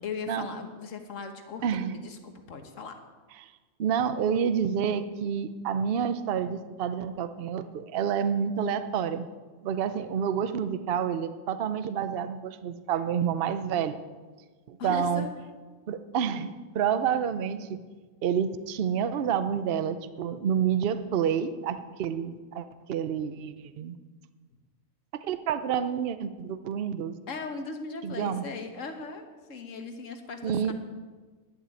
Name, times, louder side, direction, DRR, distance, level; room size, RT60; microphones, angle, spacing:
voice 1, 0.0-3.0 14.8-15.3 27.3-30.7, left 4 dB, 70° left, 6 dB, 1.6 m, -38 dB
voice 2, 1.6-1.9 3.4-3.5 3.8-9.3 9.6-14.0 14.7-15.2 15.9-17.8 18.2-24.0 25.1-27.1 28.0-28.5 30.4-30.7, right 8 dB, 55° right, 11 dB, 0.8 m, -29 dB
11.0 x 7.7 x 8.9 m, 1.4 s
omnidirectional pair, 1.4 m